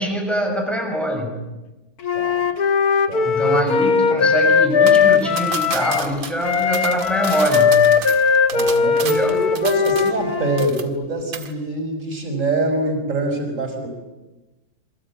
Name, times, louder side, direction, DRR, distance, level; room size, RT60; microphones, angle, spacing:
voice 1, 0.0-1.3 3.2-7.8 9.1-9.3, equal, ahead, 2 dB, 6.1 m, -23 dB
Wind instrument woodwind instrument, 2.0-6.1 6.4-10.7, left 6 dB, 55° left, 1.8 m, -18 dB
voice 2, 2.1-2.5 3.1-3.4 8.5-13.9, right 2 dB, 40° right, 4 dB, 6.4 m, -24 dB
sound 1, 4.9-10.3 10.6-11.1 11.3-11.5, right 6 dB, 80° right, 2.6 m, -32 dB
26.5 x 23.5 x 8.8 m, 1.1 s
omnidirectional pair, 2.1 m